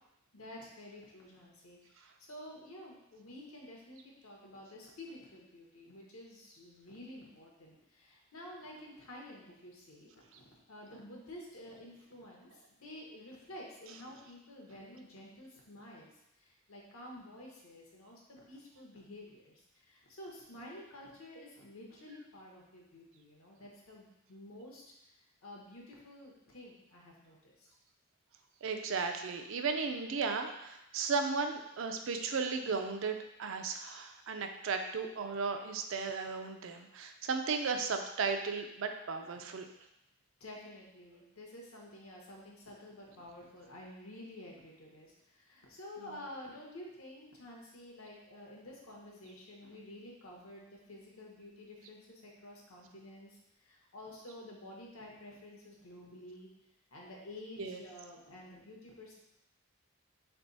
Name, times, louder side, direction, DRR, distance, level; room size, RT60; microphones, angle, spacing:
voice 1, 0.3-16.1 16.4-24.8 25.4-27.7 40.4-53.4 53.6-56.5 56.9-59.1, left 1 dB, 80° left, -2 dB, 1.1 m, -50 dB
voice 2, 28.6-39.7 46.0-46.2 57.6-57.8, right 4 dB, 65° right, 6 dB, 0.4 m, -35 dB
3.4 x 3.3 x 4.0 m, 0.85 s
head